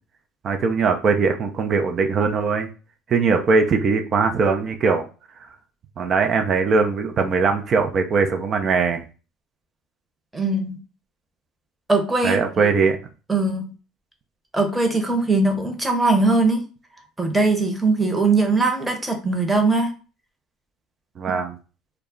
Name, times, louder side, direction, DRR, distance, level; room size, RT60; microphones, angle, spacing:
voice 1, 0.4-2.7 3.1-5.1 6.0-9.0 12.2-13.0 21.2-21.6, right 4 dB, 45° right, 5 dB, 0.5 m, -20 dB
voice 2, 10.3-10.8 11.9-12.7 13.3-13.6 14.5-16.6 17.2-19.9, right 3 dB, 10° right, 4 dB, 0.9 m, -20 dB
2.2 x 2.0 x 3.7 m, 0.35 s
hypercardioid pair, 75°, 0 cm